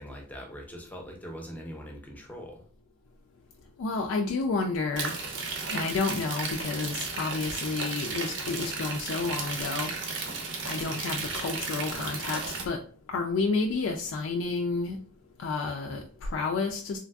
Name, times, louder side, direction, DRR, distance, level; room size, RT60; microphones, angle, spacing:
voice 1, 0.0-2.6, equal, 10° left, 1 dB, 0.5 m, -42 dB
voice 2, 3.8-5.2 5.7-9.9 10.7-12.8 13.1-15.0 15.4-17.0, left 3 dB, 80° left, 2 dB, 0.3 m, -30 dB
sound 1, 5.0-12.6, right 4 dB, 65° right, 0.6 m, -34 dB
3.1 x 2.5 x 2.3 m, 0.42 s
head